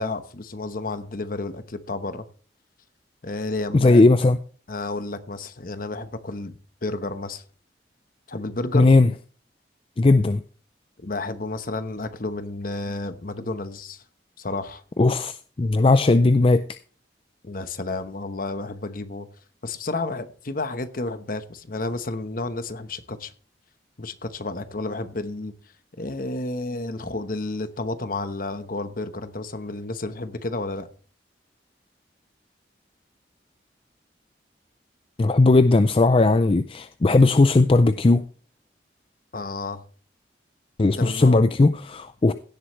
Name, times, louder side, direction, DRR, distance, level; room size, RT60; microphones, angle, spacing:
voice 1, 0.0-2.3 3.2-4.1 4.7-7.4 8.3-9.0 11.0-14.0 14.4-14.8 17.4-19.3 19.6-23.3 24.0-25.5 26.0-30.9 39.3-39.8 40.8-41.4, left 2 dB, 50° left, 1.0 m, -31 dB
voice 2, 3.7-4.4 8.7-9.1 10.0-10.4 15.0-16.6 35.2-38.2 40.8-42.3, left 2 dB, 30° left, 0.4 m, -17 dB
16.5 x 7.8 x 3.1 m
head